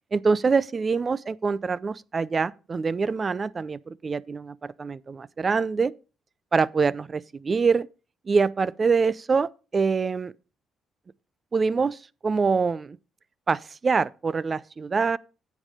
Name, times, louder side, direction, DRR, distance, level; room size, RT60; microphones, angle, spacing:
voice 1, 0.1-5.9 6.5-7.9 8.3-10.3 11.5-13.0 13.5-15.2, right 5 dB, 35° right, 0.5 m, -25 dB
9.2 x 7.3 x 5.0 m
cardioid pair, 90°, 0 cm